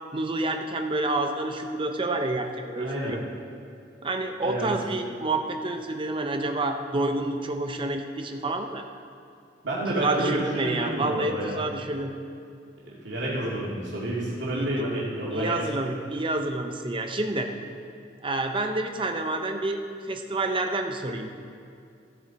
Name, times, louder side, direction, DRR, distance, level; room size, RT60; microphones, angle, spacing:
voice 1, 0.1-3.2 4.0-8.8 10.0-12.1 14.5-14.7 15.3-17.5 18.2-19.8 20.1-21.3, right 2 dB, 30° right, 5 dB, 0.7 m, -28 dB
voice 2, 2.8-3.2 4.4-4.7 9.6-11.6 12.8-15.6, right 1 dB, 80° right, -6 dB, 2.4 m, -29 dB
15.5 x 7.8 x 4.2 m, 2.4 s
head